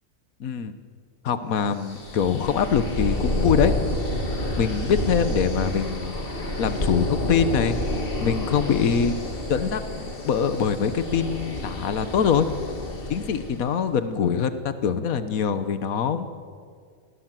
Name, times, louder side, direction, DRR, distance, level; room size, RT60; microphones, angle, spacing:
voice 1, 0.4-0.7 1.2-3.8 4.6-9.2 9.5-12.5 13.1-16.5, left 7 dB, 85° left, 11 dB, 1.5 m, -24 dB
sound 1, 1.8-13.6, left 1 dB, 40° left, 2.6 m, -29 dB
27.0 x 19.5 x 7.6 m, 2.1 s
omnidirectional pair, 1.4 m